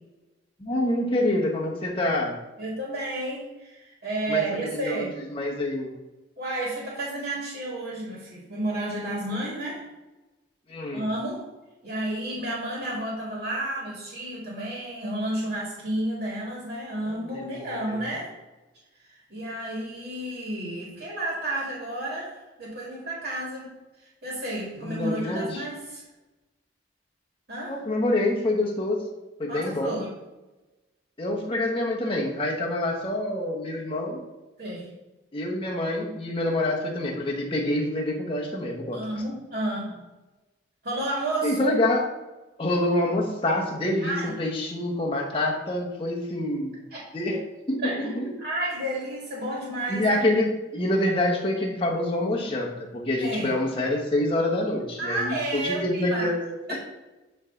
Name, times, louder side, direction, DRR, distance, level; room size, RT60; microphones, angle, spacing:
voice 1, 0.6-2.4 4.3-5.9 10.7-11.0 17.0-17.2 17.9-18.0 24.8-25.6 27.7-29.0 29.4-30.0 31.2-34.2 35.3-39.0 41.4-42.1 42.6-46.8 47.1-47.4 47.7-48.3 49.9-56.5, left 1 dB, 25° left, -2 dB, 1.1 m, -26 dB
voice 2, 2.6-5.2 6.4-9.9 10.9-11.4 11.8-18.3 19.1-23.7 24.0-26.0 27.5-27.8 29.5-30.1 34.6-34.9 38.9-40.0 40.8-41.6 44.0-44.3 46.9-47.0 47.8-50.2 53.2-53.5 55.0-56.3 56.7-56.8, right 1 dB, 55° right, -5 dB, 1.9 m, -31 dB
9.3 x 3.3 x 3.8 m, 1.1 s
head